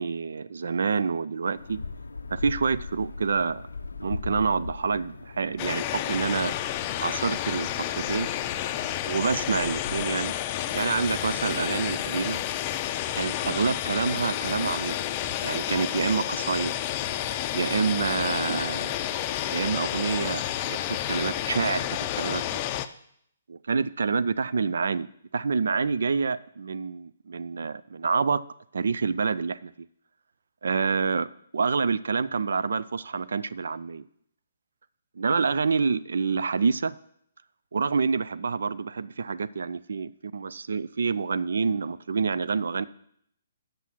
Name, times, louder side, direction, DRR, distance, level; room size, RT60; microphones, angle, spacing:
voice 1, 0.0-1.8 2.3-3.7 4.0-6.5 7.0-8.3 9.1-10.4 10.7-12.4 13.2-15.0 15.4-16.7 17.5-18.9 19.5-22.6 23.5-25.1 25.3-28.4 28.7-29.7 30.6-34.0 35.2-37.0 37.7-42.8, right 5 dB, 70° right, 17 dB, 0.4 m, -27 dB
sound 1, 1.6-10.0, left 4 dB, 85° left, 0.5 m, -40 dB
sound 2, 5.6-22.9, left 12 dB, 35° left, 0.4 m, -30 dB
8.0 x 6.4 x 6.0 m, 0.70 s
hypercardioid pair, 135°, 0 cm